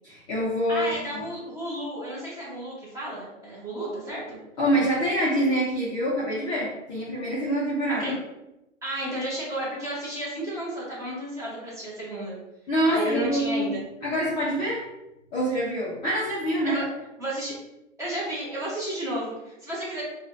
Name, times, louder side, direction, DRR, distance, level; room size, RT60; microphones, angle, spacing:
voice 1, 0.0-1.2 4.6-8.1 12.7-13.8 14.0-14.9 15.3-16.8, equal, 15° left, -9 dB, 0.6 m, -26 dB
voice 2, 0.7-4.4 8.0-8.1 8.8-12.4 12.8-13.8 16.6-16.9 17.2-17.5 18.0-20.0, right 1 dB, 10° right, -6 dB, 1.0 m, -32 dB
4.8 x 2.4 x 2.6 m, 0.92 s
hypercardioid pair, 140°, 38 cm